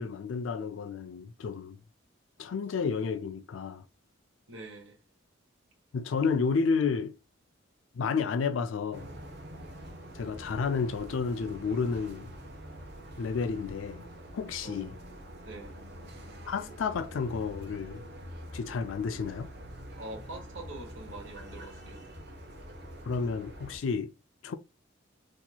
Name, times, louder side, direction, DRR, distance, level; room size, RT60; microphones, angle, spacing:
voice 1, 0.0-1.8 2.4-3.8 5.9-7.2 7.9-9.1 10.1-12.3 13.2-14.0 14.3-15.0 16.5-18.1 18.5-19.5 23.1-24.1 24.4-24.6, left 5 dB, 70° left, 0.4 m, -31 dB
voice 2, 4.5-5.0 14.6-14.9 15.4-15.8 20.0-22.0, right 2 dB, 70° right, 1.4 m, -44 dB
sound 1, 8.9-23.8, equal, 55° right, 0.9 m, -45 dB
4.1 x 2.9 x 2.2 m
head